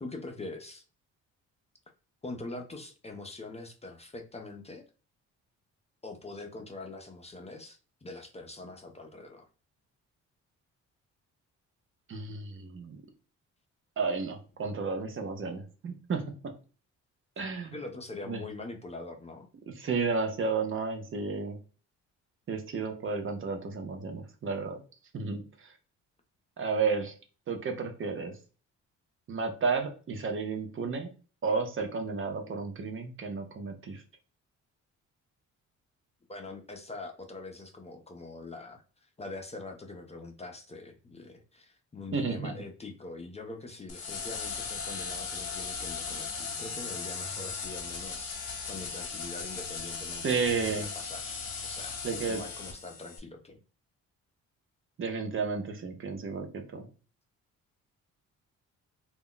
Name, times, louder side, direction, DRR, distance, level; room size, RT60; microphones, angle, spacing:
voice 1, 0.0-0.8 2.2-4.9 6.0-9.5 17.6-19.5 36.3-52.0 52.3-53.6, left 2 dB, 20° left, 3 dB, 0.5 m, -43 dB
voice 2, 12.1-13.0 14.0-16.5 17.4-17.7 18.3-18.4 19.7-21.6 22.5-24.8 25.1-25.7 26.6-27.1 27.5-28.4 29.3-31.1 31.4-34.0 42.1-42.5 50.2-50.9 52.0-52.4 55.0-56.9, right 4 dB, 45° right, 5 dB, 0.6 m, -32 dB
sound 1, 43.9-53.2, left 5 dB, 55° left, 0.9 m, -37 dB
2.2 x 2.0 x 3.7 m, 0.37 s
cardioid pair, 90°, 30 cm